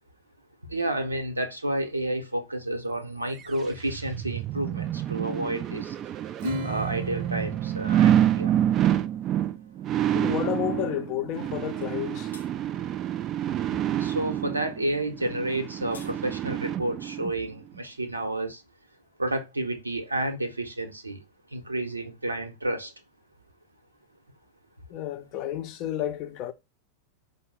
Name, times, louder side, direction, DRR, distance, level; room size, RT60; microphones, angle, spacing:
voice 1, 0.7-5.9 6.6-8.6 14.0-18.6 19.2-21.2 21.5-22.9, right 1 dB, 80° right, 0.8 m, -30 dB
sound 1, 3.4-17.3 17.8-17.9, right 11 dB, 30° right, 0.3 m, -28 dB
Acoustic guitar / Strum, 6.4-9.3, equal, 50° right, 0.7 m, -38 dB
voice 2, 10.1-12.3 24.9-26.5, left 12 dB, 40° left, 0.6 m, -31 dB
sound 2, 11.8-12.0 12.3-12.5 15.5-16.1, left 4 dB, 75° left, 0.7 m, -47 dB
5.2 x 2.1 x 4.9 m
figure-of-eight pair, 90°, 0 cm